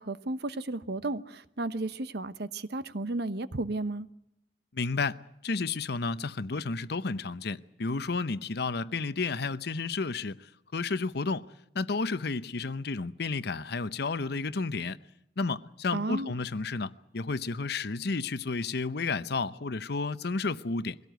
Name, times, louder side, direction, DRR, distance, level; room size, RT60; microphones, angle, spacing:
voice 1, 0.0-4.1 15.9-16.3, right 2 dB, 65° right, 1.0 m, -33 dB
voice 2, 4.7-5.2 5.4-11.5 11.7-15.0 15.4-21.0, left 4 dB, 65° left, 0.8 m, -32 dB
22.5 x 17.5 x 9.2 m
head